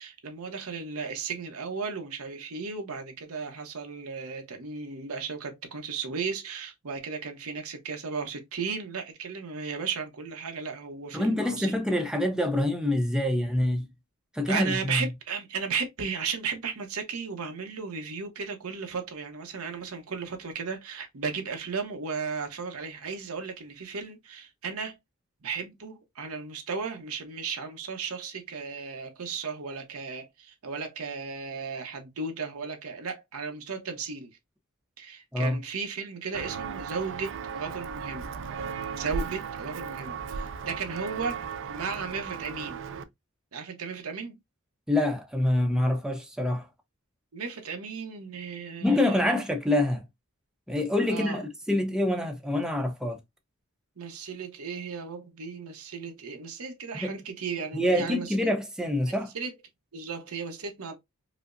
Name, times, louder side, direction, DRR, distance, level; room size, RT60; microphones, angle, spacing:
voice 1, 0.0-11.8 14.5-25.0 25.4-34.3 35.0-38.3 38.9-41.4 41.7-42.8 43.5-44.4 47.3-49.4 51.1-51.4 54.0-58.5 59.1-59.5 59.9-61.0, right 5 dB, 75° right, 0.8 m, -35 dB
voice 2, 11.1-13.9 14.3-15.1 35.3-35.6 44.9-46.7 48.8-50.0 50.7-53.2 56.9-57.2 57.7-59.3, left 1 dB, 5° right, 0.5 m, -26 dB
Walk footsteps, 36.3-43.0, right 6 dB, 60° right, 0.4 m, -36 dB
4.9 x 2.0 x 2.5 m
head